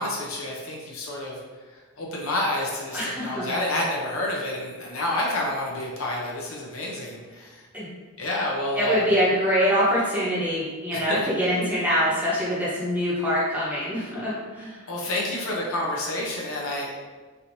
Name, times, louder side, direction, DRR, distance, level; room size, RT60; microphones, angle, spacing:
voice 1, 0.0-1.4 1.7-7.6 8.2-9.0 10.9-11.2 14.9-16.9, left 1 dB, 70° left, -2 dB, 0.6 m, -29 dB
voice 2, 2.9-3.5 7.7-7.9 8.7-14.8, equal, 5° right, -9 dB, 0.9 m, -24 dB
3.3 x 2.9 x 2.6 m, 1.4 s
head